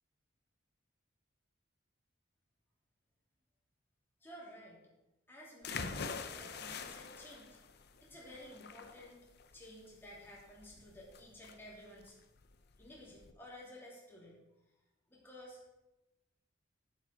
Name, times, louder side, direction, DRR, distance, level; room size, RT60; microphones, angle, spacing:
voice 1, 4.2-4.9 5.3-7.6 8.0-9.2 9.5-12.1 12.8-14.4 15.1-15.6, left 1 dB, 10° left, -4 dB, 2.8 m, -53 dB
sound 1, 5.6-13.3, left 5 dB, 55° left, 0.7 m, -45 dB
8.4 x 8.0 x 5.8 m, 0.98 s
head